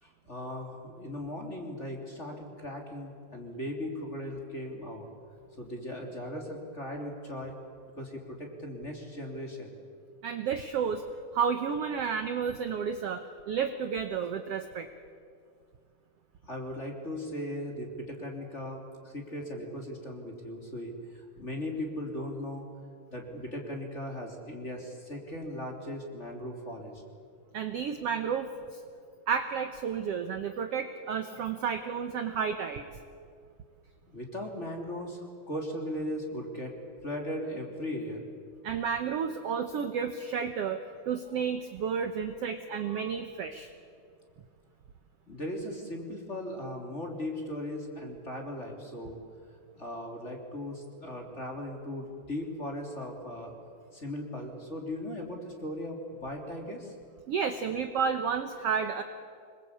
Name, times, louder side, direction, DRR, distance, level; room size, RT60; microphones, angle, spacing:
voice 1, 0.0-5.1 5.6-7.5 8.0-9.7 16.4-22.6 23.1-27.0 34.1-36.8 37.0-38.3 45.3-49.2 49.7-53.5 53.9-56.9, left 1 dB, 20° left, 1 dB, 3.2 m, -38 dB
voice 2, 10.2-11.0 11.3-14.9 27.5-28.8 29.3-32.9 38.6-40.8 41.1-43.7 57.3-59.0, right 6 dB, 75° right, 7 dB, 1.4 m, -31 dB
26.0 x 22.0 x 8.5 m, 2.3 s
omnidirectional pair, 4.2 m